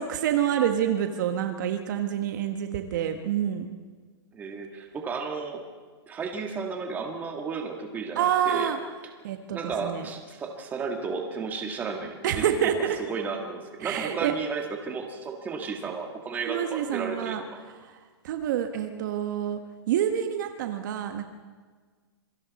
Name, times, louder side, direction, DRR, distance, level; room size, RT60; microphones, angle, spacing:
voice 1, 0.0-3.7 8.1-8.8 9.2-10.1 12.2-13.0 13.8-14.3 16.5-17.4 17.8-18.0 18.2-19.6 19.9-21.3, right 10 dB, 45° right, 6 dB, 1.2 m, -27 dB
voice 2, 4.3-5.6 6.1-8.7 9.5-12.8 13.1-17.4, right 5 dB, 10° right, 3 dB, 1.8 m, -33 dB
27.0 x 23.5 x 4.2 m, 1.5 s
hypercardioid pair, 165°, 14 cm